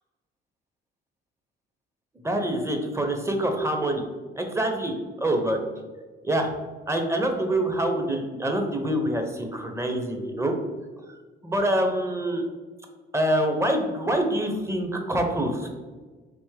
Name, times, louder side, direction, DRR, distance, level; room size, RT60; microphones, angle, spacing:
voice 1, 2.2-4.0 4.4-5.6 6.2-6.5 6.9-10.6 11.4-12.4 13.1-15.7, right 1 dB, 15° right, 4 dB, 0.6 m, -25 dB
3.4 x 2.9 x 3.2 m, 1.3 s
cardioid pair, 90°, 20 cm